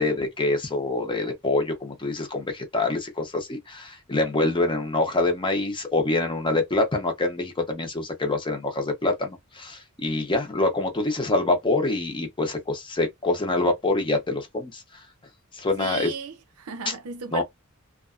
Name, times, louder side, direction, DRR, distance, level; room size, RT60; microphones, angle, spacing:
voice 1, 0.0-15.0 15.5-16.1 16.9-17.0 17.3-17.4, left 2 dB, 20° left, 0.7 m, -25 dB
voice 2, 15.8-17.4, right 5 dB, 75° right, 0.6 m, -35 dB
2.5 x 2.3 x 2.4 m
head